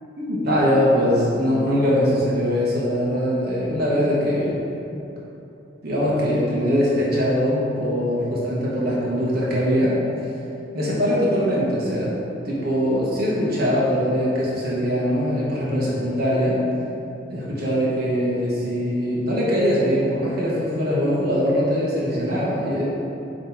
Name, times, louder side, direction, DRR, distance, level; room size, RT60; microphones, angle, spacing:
voice 1, 0.2-4.7 5.8-10.0 10.7-12.1 12.4-16.6 17.3-22.8, equal, 55° right, -7 dB, 1.3 m, -22 dB
7.0 x 3.4 x 4.5 m, 2.9 s
head